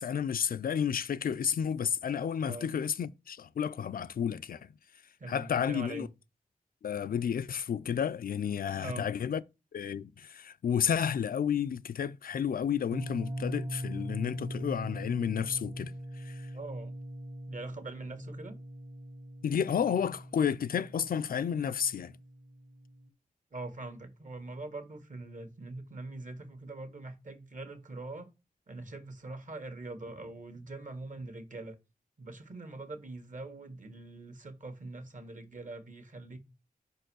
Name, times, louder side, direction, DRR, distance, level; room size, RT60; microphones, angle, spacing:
voice 1, 0.0-4.7 5.3-6.1 6.8-9.4 9.7-16.5 19.4-22.2, left 8 dB, 85° left, 0.4 m, -31 dB
voice 2, 5.2-6.1 8.8-9.1 16.5-17.0 17.5-18.6 23.5-28.3 28.7-31.7 32.2-36.4, right 2 dB, 60° right, 1.6 m, -43 dB
sound 1, 12.9-23.1, equal, 25° right, 0.9 m, -41 dB
5.3 x 4.6 x 6.2 m
wide cardioid pair, 95°, 15 cm